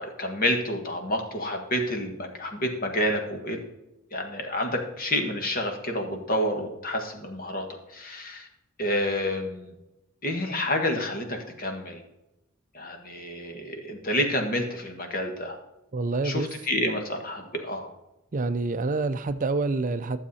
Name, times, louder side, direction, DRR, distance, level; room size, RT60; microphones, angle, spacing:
voice 1, 0.0-3.6 4.1-8.5 8.8-9.7 10.2-12.0 12.7-15.6 16.2-17.9, left 1 dB, 45° left, 4 dB, 1.7 m, -29 dB
voice 2, 15.9-16.5 18.3-20.2, right 3 dB, 40° right, 10 dB, 0.5 m, -27 dB
12.5 x 7.2 x 4.2 m, 0.96 s
head